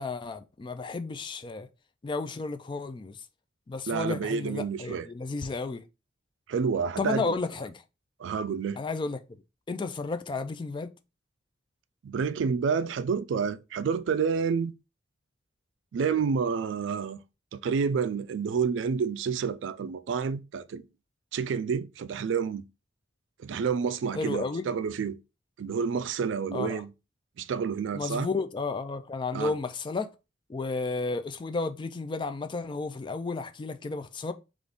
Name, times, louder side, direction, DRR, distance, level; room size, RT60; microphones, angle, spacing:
voice 1, 0.0-1.7 2.0-3.2 3.7-5.8 7.0-7.8 8.8-9.4 9.7-10.9 24.1-24.7 26.5-26.8 27.9-30.1 30.5-34.3, left 3 dB, 25° left, 0.3 m, -32 dB
voice 2, 3.9-5.1 6.5-7.4 8.2-8.8 12.0-14.7 15.9-17.2 17.5-20.8 21.3-22.6 23.4-25.2 25.6-26.9 27.4-28.3 29.3-29.5, right 6 dB, 75° right, 0.3 m, -29 dB
3.8 x 2.5 x 3.4 m
head